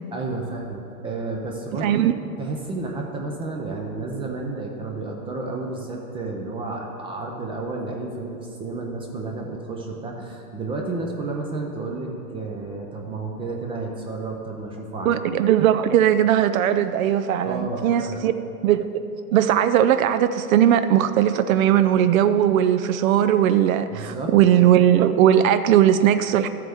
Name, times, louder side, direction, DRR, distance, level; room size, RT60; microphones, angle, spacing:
voice 1, 0.1-2.0 2.4-15.2 17.4-18.2 23.9-24.3, right 3 dB, 10° right, 0 dB, 0.4 m, -31 dB
voice 2, 1.8-2.1 15.1-18.3 18.6-18.9 19.3-26.5, right 10 dB, 60° right, 10 dB, 0.5 m, -18 dB
12.5 x 7.6 x 3.5 m, 2.8 s
hypercardioid pair, 125°, 46 cm